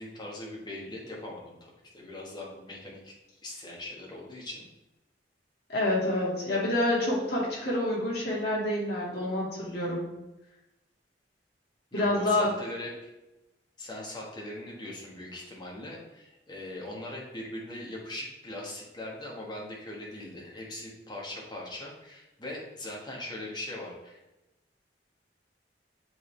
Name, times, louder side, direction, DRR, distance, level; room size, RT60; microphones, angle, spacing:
voice 1, 0.0-3.1 3.4-4.7 11.9-13.1 13.8-24.2, left 1 dB, 25° left, -2 dB, 1.5 m, -40 dB
voice 2, 5.7-10.1 11.9-12.5, left 1 dB, 60° left, -5 dB, 2.1 m, -27 dB
7.6 x 3.7 x 3.3 m, 0.96 s
head